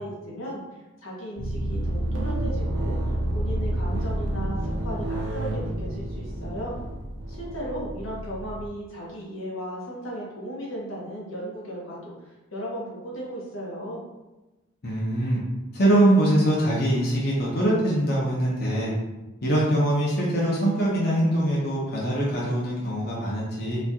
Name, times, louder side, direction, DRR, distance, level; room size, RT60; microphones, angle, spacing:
voice 1, 0.0-6.8 7.3-14.0, equal, 90° left, -4 dB, 1.1 m, -36 dB
sound 1, 1.4-8.7, right 1 dB, 65° right, 0.5 m, -29 dB
voice 2, 14.8-15.4 15.7-18.9 19.4-23.8, right 1 dB, 50° left, -5 dB, 0.8 m, -23 dB
4.1 x 2.4 x 2.8 m, 1.1 s
head